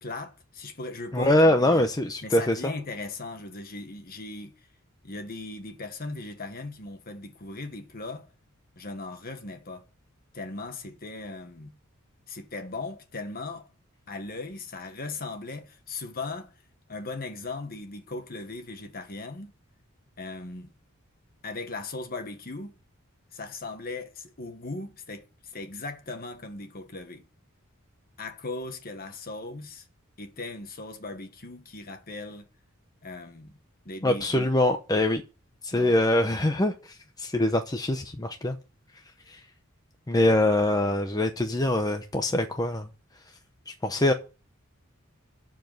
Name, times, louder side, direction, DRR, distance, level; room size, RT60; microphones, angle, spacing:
voice 1, 0.0-1.9 2.2-4.5 5.0-8.3 8.8-9.9 10.3-11.7 12.3-13.7 14.1-16.5 16.9-19.5 20.2-20.7 21.4-22.7 23.3-27.2 28.2-29.8 30.2-32.5 33.0-33.6 33.8-34.5 35.7-35.9, left 3 dB, 45° left, 1.5 m, -38 dB
voice 2, 1.1-2.7 34.0-35.2 35.6-38.6 39.3-39.4 40.1-42.9 43.7-44.1, left 1 dB, 20° left, 0.8 m, -24 dB
12.5 x 4.7 x 7.8 m
head